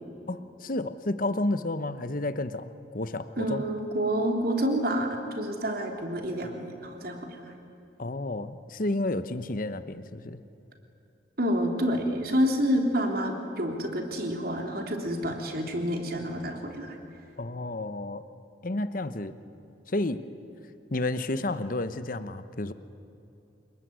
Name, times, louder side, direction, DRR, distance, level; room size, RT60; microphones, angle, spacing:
voice 1, 0.3-3.6 8.0-10.4 17.4-18.2 18.6-19.4 19.9-20.2 20.9-22.7, left 2 dB, 45° left, 12 dB, 1.0 m, -31 dB
voice 2, 3.4-7.3 11.4-17.0, equal, 55° right, 3 dB, 3.5 m, -28 dB
28.0 x 20.5 x 9.5 m, 2.8 s
head